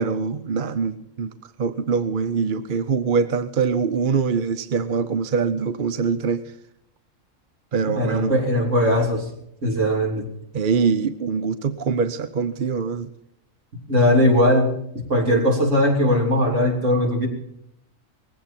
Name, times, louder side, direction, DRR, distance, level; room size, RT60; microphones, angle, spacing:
voice 1, 0.0-1.3 1.6-6.4 7.7-8.4 10.5-13.1 15.3-15.4, right 5 dB, 45° right, 12 dB, 0.8 m, -23 dB
voice 2, 7.8-9.2 9.6-10.3 13.9-14.7 15.1-17.3, left 1 dB, 60° right, 1 dB, 3.7 m, -19 dB
19.5 x 16.0 x 4.4 m, 0.77 s
omnidirectional pair, 1.4 m